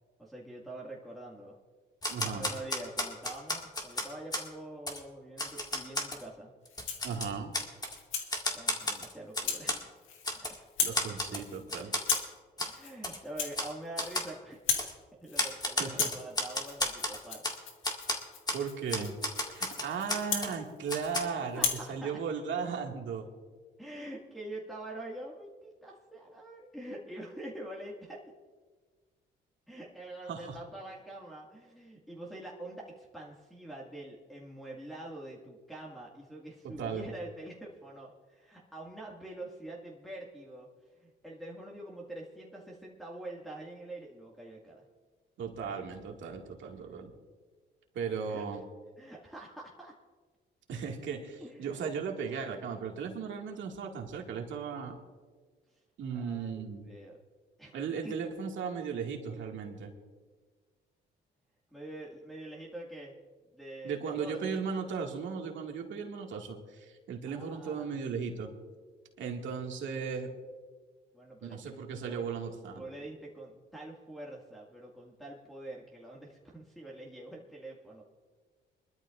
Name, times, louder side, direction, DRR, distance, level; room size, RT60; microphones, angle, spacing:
voice 1, 0.2-1.6 2.2-6.5 8.5-10.0 10.4-10.6 12.6-14.6 15.2-17.5 21.5-22.1 23.8-28.2 29.7-40.7 41.0-44.8 45.7-45.8 48.3-48.5 49.0-50.0 51.4-51.8 56.1-57.2 57.6-57.7 58.0-58.2 61.7-63.1 63.5-64.6 67.4-67.8 71.1-71.8 72.1-72.3 72.7-78.0, right 1 dB, ahead, -5 dB, 2.1 m, -45 dB
Typewriter, 2.0-4.5 4.9-5.0 5.4-6.2 6.7-8.0 8.3-9.8 10.2-10.6 10.9-11.4 11.7-12.2 12.6-12.7 13.0-13.2 13.5-13.7 14.0-14.3 14.8-14.9 15.4-17.6 17.8-18.2 18.5-18.6 18.9-20.6 20.9-21.2, left 1 dB, 20° left, 2.0 m, -33 dB
voice 2, 2.1-2.4 7.0-7.5 10.8-11.9 15.8-16.1 18.5-19.1 19.5-23.3 30.2-30.6 36.6-37.1 45.4-47.1 47.9-48.6 50.7-55.0 56.0-56.9 57.7-59.9 63.8-68.5 69.2-70.3 71.4-72.8, right 6 dB, 75° right, 1 dB, 2.1 m, -36 dB
Rattle (instrument), 6.7-7.1 7.6-8.3 8.8-9.0 9.4-9.7 10.0-10.4 10.6-11.0 11.3-11.6 12.0-12.4 12.7-13.0 13.2-14.3 14.5-14.9 15.2-15.6 15.8-21.2 21.5-21.9, left 6 dB, 85° left, 1.7 m, -36 dB
23.5 x 12.5 x 2.6 m, 1.5 s
cardioid pair, 90°, 20 cm